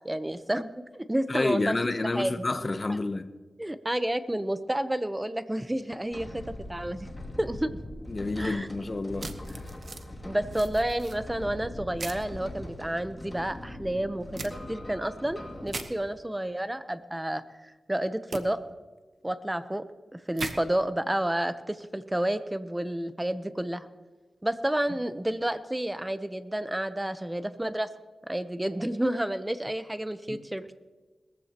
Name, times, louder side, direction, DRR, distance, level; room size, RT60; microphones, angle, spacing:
voice 1, 0.0-1.8 2.2-2.3 2.9-3.0 3.6-6.4 6.7-7.1 7.4-7.8 8.4-8.7 10.2-18.6 19.2-19.8 20.1-23.9 24.4-27.9 28.2-30.7, right 1 dB, 10° right, 0.7 m, -30 dB
voice 2, 1.3-3.3 8.1-9.6 24.9-25.0 30.3-30.4, left 2 dB, 35° left, 0.8 m, -29 dB
sound 1, 6.1-15.9, left 1 dB, 20° left, 2.5 m, -41 dB
sound 2, 9.2-10.0 10.5-11.2 12.0-12.2 14.4-14.5 15.7-15.9 18.3-18.4 20.4-20.5, right 3 dB, 55° right, 1.0 m, -37 dB
20.5 x 15.0 x 2.9 m
wide cardioid pair, 95°, 0 cm